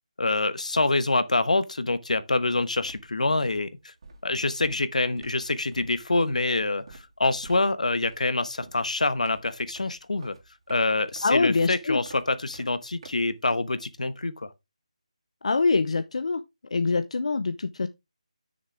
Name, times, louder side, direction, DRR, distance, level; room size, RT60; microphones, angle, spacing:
voice 1, 0.2-3.7 4.2-10.3 10.7-14.5, left 2 dB, 80° left, 1.2 m, -26 dB
sound 1, 2.2-2.4 2.7-14.1, right 3 dB, 45° right, 3.0 m, -51 dB
voice 2, 11.2-12.0 15.4-16.4 16.7-17.9, left 4 dB, 60° left, 0.6 m, -24 dB
11.0 x 6.5 x 3.4 m
figure-of-eight pair, 165°, 4 cm